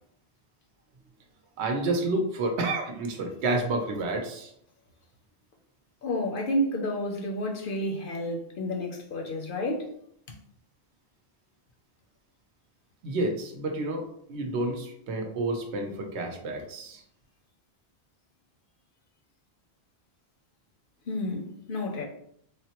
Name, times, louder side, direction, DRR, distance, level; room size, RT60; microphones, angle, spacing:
voice 1, 1.6-4.5 13.0-17.0, right 2 dB, 80° right, 0.9 m, -30 dB
voice 2, 6.0-9.9 10.3-10.4 21.1-22.0, left 1 dB, 60° left, 0.6 m, -30 dB
3.5 x 2.0 x 2.8 m
omnidirectional pair, 1.1 m